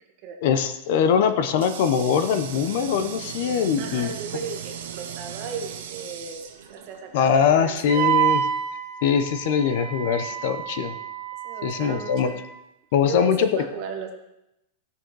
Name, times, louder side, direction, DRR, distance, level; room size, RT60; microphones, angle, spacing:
voice 1, 0.4-4.1 7.1-8.4 9.0-10.9 11.6-12.3 12.9-13.6, left 7 dB, 45° left, 10 dB, 0.8 m, -22 dB
Water tap faucet, 0.9-7.4, right 8 dB, 65° right, 1.7 m, -40 dB
Microwave oven, 1.1-1.2 2.1-6.4, right 11 dB, 85° right, 0.7 m, -40 dB
voice 2, 3.8-8.1 11.4-12.4 13.0-14.1, right 6 dB, 30° right, 2 dB, 1.5 m, -35 dB
Wind instrument woodwind instrument, 7.9-12.5, right 10 dB, 45° right, 1.7 m, -28 dB
16.5 x 6.5 x 4.7 m, 0.89 s
supercardioid pair, 180°, 0 cm